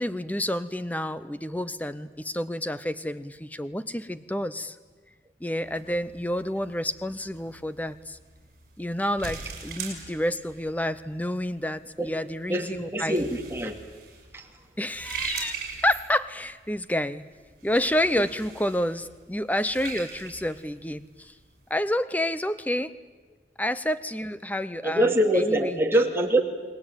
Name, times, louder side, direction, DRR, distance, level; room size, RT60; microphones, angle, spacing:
voice 1, 0.0-4.8 5.4-8.2 8.8-13.3 14.8-17.3 17.6-21.3 21.7-22.9 23.6-25.8, left 1 dB, 10° left, 14 dB, 0.8 m, -29 dB
sound 1, 5.6-21.8, right 5 dB, 50° right, 6.3 m, -42 dB
voice 2, 12.5-13.7 14.3-14.4 24.8-26.4, right 1 dB, 15° right, 2 dB, 2.4 m, -24 dB
29.0 x 20.5 x 9.0 m, 1.4 s
head